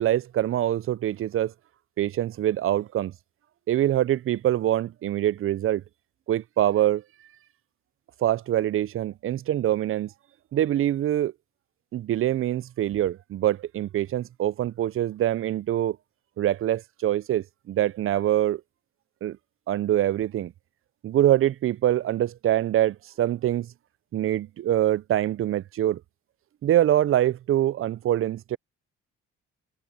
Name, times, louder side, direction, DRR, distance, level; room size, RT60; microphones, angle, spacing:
voice 1, 0.0-1.5 2.0-3.1 3.7-5.8 6.3-7.0 8.2-10.1 10.5-11.3 11.9-16.0 16.4-18.6 19.2-19.4 19.7-20.5 21.0-23.7 24.1-26.0 26.6-28.6, right 12 dB, 45° right, 0.4 m, -24 dB
cardioid pair, 90°, 30 cm